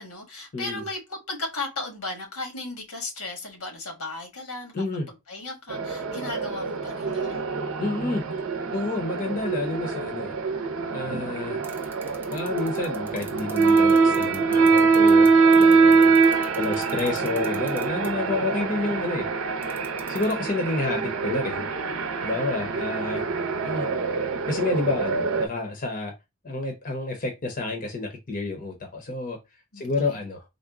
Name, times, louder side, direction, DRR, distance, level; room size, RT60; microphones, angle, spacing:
voice 1, 0.0-4.7 5.3-7.5 16.3-16.6 20.9-21.0 29.7-30.2, left 2 dB, 85° left, 1.4 m, -36 dB
voice 2, 0.5-0.8 4.7-5.1 7.8-8.2 8.7-10.3 10.9-11.6 12.3-15.3 15.6-16.1 16.6-19.3 20.1-21.7 22.2-23.3 23.6-23.9 24.5-26.1 26.4-29.4 29.8-30.4, left 2 dB, 40° left, 0.7 m, -29 dB
sound 1, 5.7-25.5, right 4 dB, 70° right, 0.6 m, -23 dB
sound 2, 11.6-15.3 15.5-18.1 19.6-20.3, right 5 dB, 10° right, 0.5 m, -41 dB
3.9 x 2.1 x 3.5 m
head